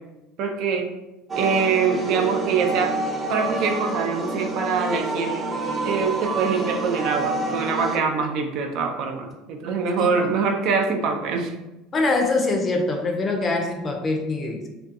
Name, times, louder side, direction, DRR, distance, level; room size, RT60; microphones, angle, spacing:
voice 1, 0.4-0.9 1.4-2.9 3.3-5.4 5.8-11.5, right 5 dB, 60° right, 4 dB, 0.4 m, -24 dB
sound 1, 1.3-8.0, right 2 dB, 20° right, 0.7 m, -28 dB
voice 2, 11.9-14.7, left 3 dB, 30° left, 3 dB, 0.5 m, -24 dB
2.5 x 2.3 x 2.6 m, 0.98 s
supercardioid pair, 95°, 0 cm